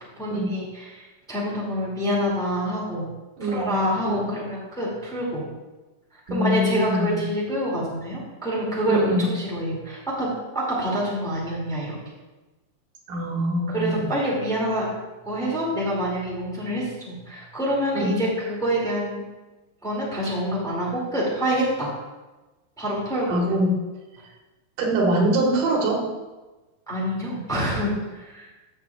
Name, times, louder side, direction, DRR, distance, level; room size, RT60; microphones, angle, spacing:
voice 1, 0.2-3.1 3.4-5.4 6.3-10.3 10.5-11.9 13.7-14.9 15.2-19.2 19.8-21.9 22.8-23.4 26.9-28.5, equal, ahead, -5 dB, 1.6 m, -26 dB
voice 2, 3.4-3.7 4.0-4.3 6.3-7.2 8.9-9.3 13.1-14.1 17.9-18.2 23.3-23.7 24.8-26.0, right 1 dB, 90° right, -1 dB, 3.0 m, -23 dB
14.5 x 6.5 x 2.4 m, 1.2 s
omnidirectional pair, 3.7 m